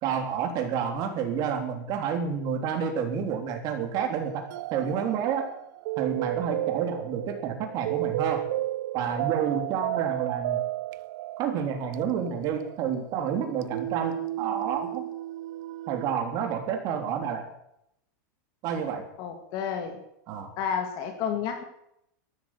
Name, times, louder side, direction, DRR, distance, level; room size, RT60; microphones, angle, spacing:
voice 1, 0.0-4.4 4.7-5.5 6.0-8.4 8.9-10.6 11.4-15.1 15.9-17.4 18.6-19.0 20.3-20.5, right 7 dB, 40° right, 4 dB, 3.3 m, -29 dB
sound 1, 4.1-16.1, right 15 dB, 70° right, 0.5 m, -33 dB
voice 2, 19.2-20.0 20.6-21.6, left 7 dB, 45° left, 5 dB, 2.0 m, -30 dB
13.0 x 11.5 x 9.1 m, 0.78 s
supercardioid pair, 155°, 10 cm